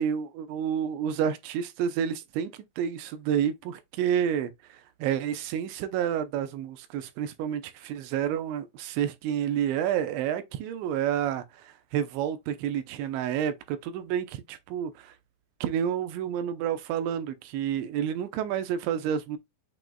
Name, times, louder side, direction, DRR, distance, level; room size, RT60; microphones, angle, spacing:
voice 1, 0.0-15.1 15.6-19.4, right 9 dB, 85° right, 3.0 m, -29 dB
7.6 x 2.9 x 2.3 m
omnidirectional pair, 5.2 m